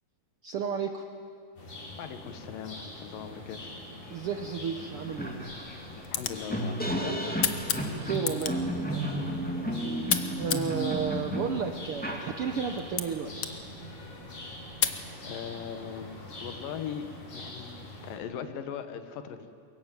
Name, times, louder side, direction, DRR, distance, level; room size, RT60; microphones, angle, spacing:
voice 1, 0.4-1.0 4.1-5.4 8.0-9.0 10.4-13.5, right 6 dB, 75° right, 6 dB, 1.3 m, -32 dB
sound 1, 1.6-18.2, left 1 dB, 50° left, 5.5 m, -44 dB
voice 2, 2.0-3.7 6.1-7.4 15.2-16.1 16.4-17.1 17.3-19.5, left 8 dB, 90° left, 9 dB, 3.0 m, -39 dB
sound 2, 4.4-4.5 4.8-12.9, equal, 5° left, 1.8 m, -33 dB
sound 3, 5.9-15.0, left 8 dB, 70° left, 1.1 m, -36 dB
24.0 x 21.5 x 9.3 m, 2.5 s
omnidirectional pair, 3.9 m